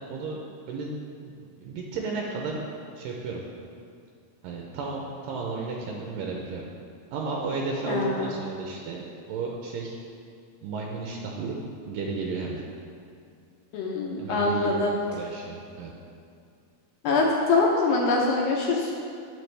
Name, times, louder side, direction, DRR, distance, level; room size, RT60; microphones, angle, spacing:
voice 1, 0.1-0.9 1.2-1.3 1.6-2.6 2.9-3.4 4.4-6.7 7.1-10.0 10.6-11.6 11.8-12.6 14.2-15.9, right 4 dB, 85° right, -1 dB, 1.9 m, -33 dB
voice 2, 7.9-8.3 13.7-15.0 17.0-18.9, left 3 dB, 75° left, -2 dB, 2.3 m, -24 dB
9.3 x 7.3 x 3.3 m, 2.4 s
omnidirectional pair, 4.6 m